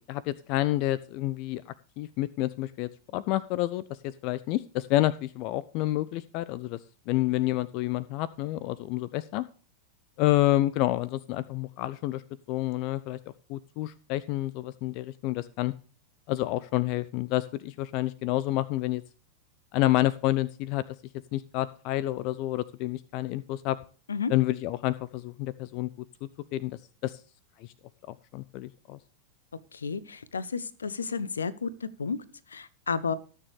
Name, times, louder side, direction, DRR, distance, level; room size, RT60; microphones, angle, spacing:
voice 1, 0.1-6.8 7.1-9.4 10.2-12.2 12.5-13.2 13.5-15.7 16.3-19.0 19.7-20.8 21.3-23.8 24.3-25.9 26.5-27.2 27.6-27.7 28.1-29.0, left 16 dB, 45° left, 19 dB, 0.5 m, -29 dB
voice 2, 29.7-32.2 32.5-33.2, left 5 dB, 70° left, 20 dB, 0.8 m, -32 dB
19.5 x 6.8 x 3.2 m, 0.39 s
figure-of-eight pair, 90°, 0 cm